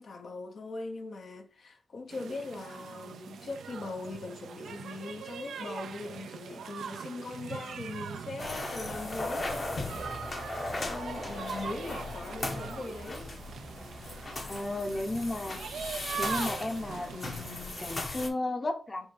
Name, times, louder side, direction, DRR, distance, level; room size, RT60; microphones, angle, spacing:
voice 1, 0.0-13.3, left 3 dB, 70° left, 0.9 m, -41 dB
sound 1, 2.1-18.0, right 7 dB, 85° right, 0.4 m, -42 dB
sound 2, 8.4-18.3, left 2 dB, 50° left, 1.2 m, -37 dB
voice 2, 14.5-15.6 16.2-19.1, left 2 dB, 35° left, 0.9 m, -34 dB
4.5 x 2.4 x 4.5 m
supercardioid pair, 40°, 0 cm